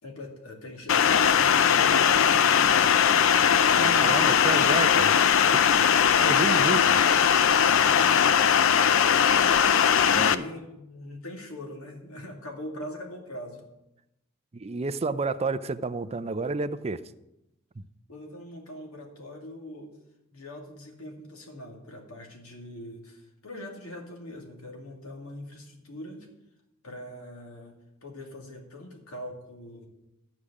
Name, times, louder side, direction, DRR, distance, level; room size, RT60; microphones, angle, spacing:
voice 1, 0.0-3.0 3.3-4.3 7.6-8.3 10.1-13.7 18.1-19.9 20.3-26.3 26.8-27.8 28.0-29.9, left 1 dB, 85° left, 1 dB, 2.4 m, -42 dB
sound 1, 0.9-10.3, left 8 dB, 65° left, 0.5 m, -20 dB
voice 2, 3.8-5.2 5.8-7.0 10.1-10.5 14.5-17.0 17.8-17.9, right 3 dB, 30° right, 12 dB, 0.5 m, -31 dB
12.5 x 5.0 x 8.3 m, 0.90 s
head